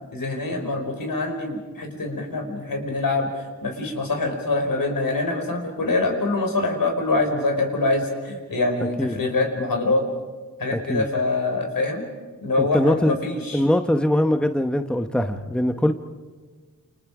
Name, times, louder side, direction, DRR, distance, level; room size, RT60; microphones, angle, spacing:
voice 1, 0.1-10.0 10.6-12.0 12.4-13.6, left 2 dB, 80° left, 3 dB, 5.1 m, -25 dB
voice 2, 10.7-11.0 12.6-13.2 13.5-15.9, left 1 dB, 5° left, 7 dB, 1.0 m, -22 dB
29.0 x 28.0 x 5.0 m, 1.4 s
wide cardioid pair, 105°, 34 cm